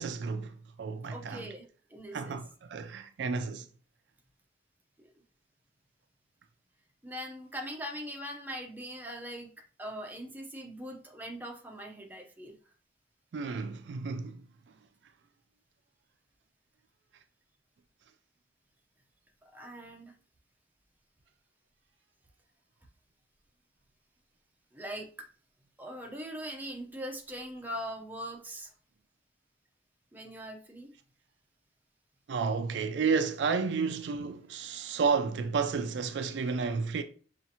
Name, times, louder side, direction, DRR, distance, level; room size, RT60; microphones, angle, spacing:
voice 1, 0.0-1.5 2.1-3.7 13.3-14.4 32.3-37.0, right 5 dB, 75° right, 0.4 m, -31 dB
voice 2, 1.1-2.3 7.0-9.5 9.8-12.6 19.4-20.1 24.7-25.3 25.8-28.7 30.1-30.9, equal, 10° right, 0.6 m, -41 dB
5.5 x 2.5 x 2.8 m
head